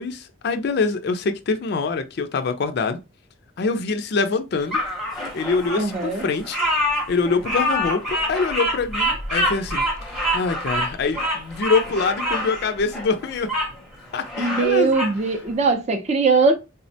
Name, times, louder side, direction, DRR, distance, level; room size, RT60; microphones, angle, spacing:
voice 1, 0.0-3.0 3.6-4.8 5.3-6.6 7.1-13.5 14.1-15.0, left 4 dB, 55° left, 0.4 m, -24 dB
Bird vocalization bird call bird song, 4.7-13.7 14.1-15.2, equal, ahead, 0.7 m, -26 dB
voice 2, 5.8-6.3 14.4-16.5, right 4 dB, 35° right, 0.4 m, -20 dB
3.4 x 2.1 x 2.6 m
head